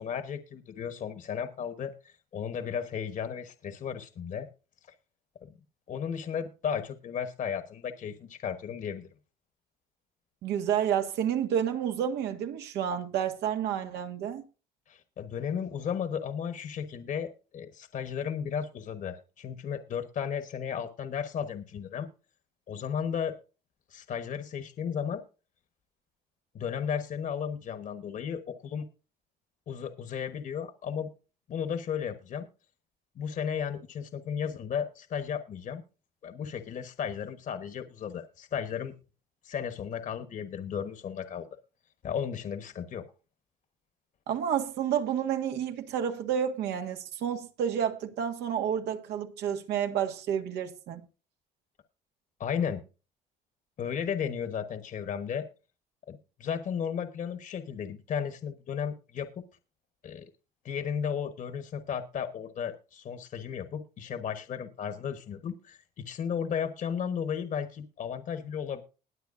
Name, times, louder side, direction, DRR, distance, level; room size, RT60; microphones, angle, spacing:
voice 1, 0.0-4.5 4.9-5.0 5.4-5.5 5.9-9.1 14.9-22.1 22.7-23.4 23.9-25.2 26.5-28.9 29.7-31.1 31.5-32.5 33.1-35.8 36.2-38.9 39.4-41.5 42.0-43.1 52.4-52.8 53.8-55.5 56.1-59.4 60.0-60.3 60.6-68.8, left 7 dB, 50° left, 1.2 m, -34 dB
voice 2, 10.4-14.4 44.3-51.0, right 9 dB, 85° right, 1.7 m, -30 dB
20.5 x 7.8 x 2.6 m
cardioid pair, 110°, 17 cm